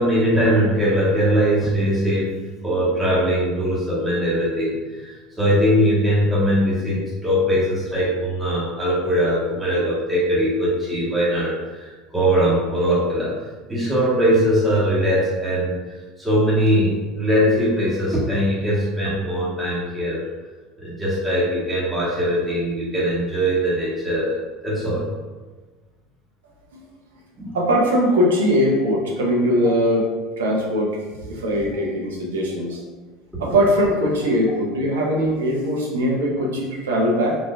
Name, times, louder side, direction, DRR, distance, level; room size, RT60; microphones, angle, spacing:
voice 1, 0.0-2.3 2.6-20.2 20.8-25.0 27.4-27.6, equal, 10° right, -9 dB, 1.5 m, -21 dB
voice 2, 27.5-30.0 30.4-30.9 31.3-32.8 33.4-37.4, equal, 85° right, -2 dB, 0.8 m, -20 dB
3.9 x 3.1 x 2.4 m, 1.3 s
hypercardioid pair, 80°, 0 cm